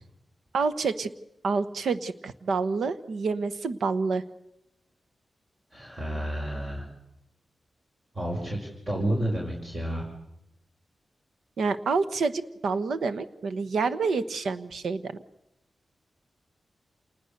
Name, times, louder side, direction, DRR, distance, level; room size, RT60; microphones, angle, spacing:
voice 1, 0.5-1.1 1.4-4.2 11.6-15.2, right 4 dB, 90° right, 13 dB, 1.1 m, -28 dB
voice 2, 5.7-6.8 8.1-10.1, right 1 dB, 35° right, -1 dB, 5.2 m, -30 dB
27.5 x 20.0 x 6.7 m, 0.85 s
wide cardioid pair, 85°, 0 cm